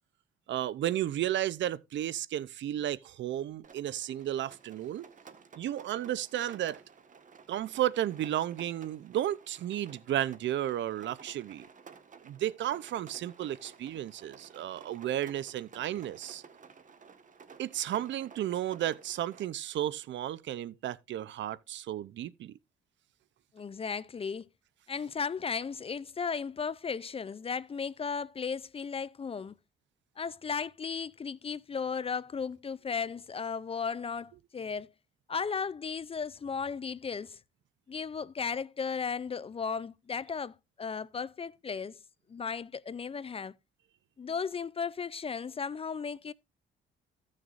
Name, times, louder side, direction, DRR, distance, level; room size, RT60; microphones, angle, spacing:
voice 1, 0.5-5.1 5.6-6.8 7.5-11.7 12.2-16.4 17.6-22.5, right 12 dB, 70° right, 0.6 m, -33 dB
Rain, 3.6-19.5, right 5 dB, 40° right, 1.5 m, -54 dB
voice 2, 23.5-24.5 24.9-29.5 30.2-34.9 35.3-37.4 37.9-42.0 42.3-43.5 44.2-46.3, left 6 dB, 30° left, 0.5 m, -35 dB
15.5 x 6.5 x 2.5 m
cardioid pair, 90°, 20 cm